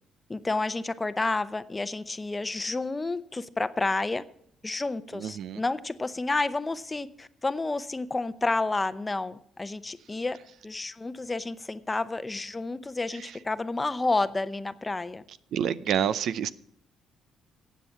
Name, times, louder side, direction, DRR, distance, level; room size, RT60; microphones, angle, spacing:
voice 1, 0.3-4.2 4.6-10.4 10.6-15.2, left 3 dB, 20° left, 0.7 m, -30 dB
voice 2, 5.1-5.6 13.2-13.3 15.5-16.5, right 9 dB, 75° right, 0.6 m, -28 dB
15.0 x 8.4 x 5.8 m
cardioid pair, 90°, 0 cm